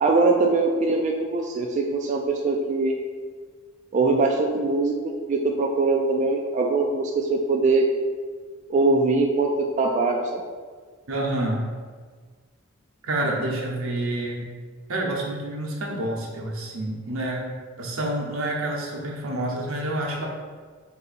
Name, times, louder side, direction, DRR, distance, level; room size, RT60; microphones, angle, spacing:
voice 1, 0.0-2.9 3.9-4.9 5.3-7.9 8.7-10.4, right 3 dB, 35° right, 1 dB, 0.3 m, -22 dB
voice 2, 11.1-11.7 13.1-14.5 14.9-17.5 17.8-20.3, right 1 dB, 80° right, -1 dB, 0.8 m, -28 dB
3.9 x 2.7 x 4.0 m, 1.6 s
head